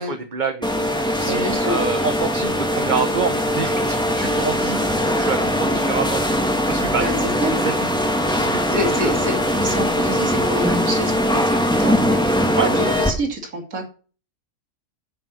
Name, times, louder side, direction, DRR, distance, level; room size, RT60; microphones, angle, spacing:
voice 1, 0.0-6.3 6.7-7.0 7.4-8.7 9.0-9.1 12.6-12.9, right 5 dB, 35° right, 6 dB, 1.1 m, -27 dB
sound 1, 0.6-13.1, equal, 5° left, 2.0 m, -21 dB
voice 2, 1.3-1.8 5.4-5.9 7.0-7.6 8.7-13.9, equal, 65° right, 3 dB, 3.1 m, -28 dB
10.5 x 7.0 x 6.2 m, 0.38 s
omnidirectional pair, 1.6 m